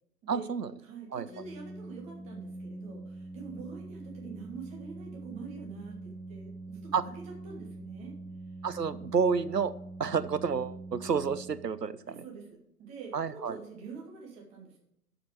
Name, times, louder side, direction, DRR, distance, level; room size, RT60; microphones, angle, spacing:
voice 1, 0.3-0.7 1.1-1.2 6.9-7.0 8.6-9.7 10.0-12.2 13.1-13.6, right 6 dB, 85° right, 14 dB, 0.7 m, -29 dB
voice 2, 0.8-8.1 12.1-14.8, right 5 dB, 15° right, -1 dB, 1.5 m, -46 dB
Organ, 1.2-12.0, right 2 dB, 15° left, 2.4 m, -44 dB
11.5 x 5.2 x 4.5 m, 0.76 s
figure-of-eight pair, 125°, 47 cm